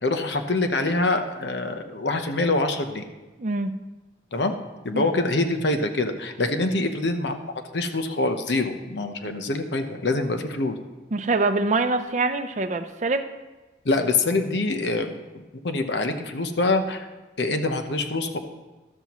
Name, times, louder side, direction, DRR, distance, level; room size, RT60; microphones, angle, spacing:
voice 1, 0.0-3.1 4.3-4.6 4.8-7.4 7.7-10.8 13.8-17.1 17.4-18.4, left 2 dB, 75° left, 7 dB, 0.9 m, -25 dB
voice 2, 3.4-3.7 4.9-5.1 11.1-13.3, right 3 dB, 40° right, 7 dB, 0.6 m, -24 dB
13.0 x 12.5 x 3.1 m, 1.2 s
head